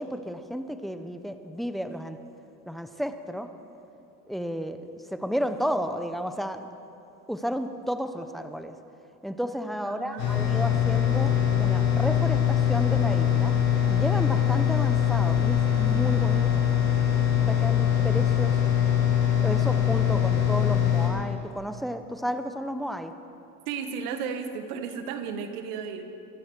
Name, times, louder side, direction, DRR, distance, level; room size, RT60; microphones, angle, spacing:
voice 1, 0.0-2.2 2.7-3.5 4.3-6.6 7.3-8.8 9.2-13.5 13.9-16.7 17.5-18.8 19.4-23.1, equal, ahead, 9 dB, 0.9 m, -32 dB
voice 2, 9.9-10.6 23.7-26.1, right 6 dB, 80° right, 8 dB, 1.5 m, -34 dB
sound 1, 10.2-21.1, left 10 dB, 75° left, 3.0 m, -23 dB
24.0 x 11.5 x 4.7 m, 2.8 s
hypercardioid pair, 80°, 45 cm